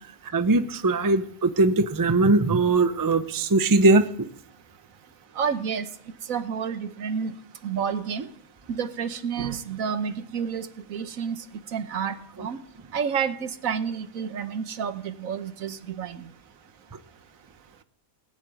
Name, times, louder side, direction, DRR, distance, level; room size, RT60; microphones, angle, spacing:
voice 1, 0.2-4.3, right 2 dB, 30° right, 11 dB, 0.4 m, -21 dB
voice 2, 5.4-5.9 6.3-7.3 7.6-8.3 8.7-11.4 11.7-12.6 12.9-16.2, right 7 dB, 65° right, 11 dB, 1.3 m, -30 dB
19.0 x 7.3 x 9.3 m, 0.65 s
omnidirectional pair, 1.6 m